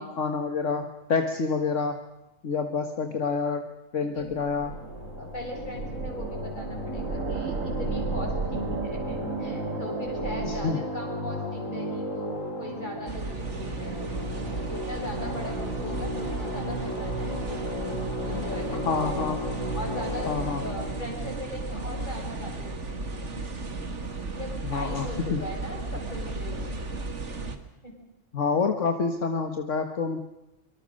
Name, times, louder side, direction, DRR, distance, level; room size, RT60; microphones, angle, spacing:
voice 1, 0.0-2.0 2.4-3.7 3.9-4.7 10.4-10.8 18.9-19.4 20.3-20.6 24.6-25.1 25.3-25.4 28.3-30.2, left 5 dB, 70° left, 6 dB, 1.9 m, -27 dB
voice 2, 4.0-4.3 5.1-14.0 14.5-19.0 19.7-24.1 24.3-26.8 27.8-27.9, left 1 dB, 35° left, 1 dB, 7.1 m, -39 dB
sound 1, 4.1-10.7, right 5 dB, 85° right, 1.9 m, -34 dB
sound 2, 4.5-22.7, equal, 85° left, 4.4 m, -35 dB
sound 3, 13.1-27.6, right 3 dB, 65° right, 2.4 m, -34 dB
25.0 x 24.5 x 6.5 m, 0.95 s
omnidirectional pair, 1.3 m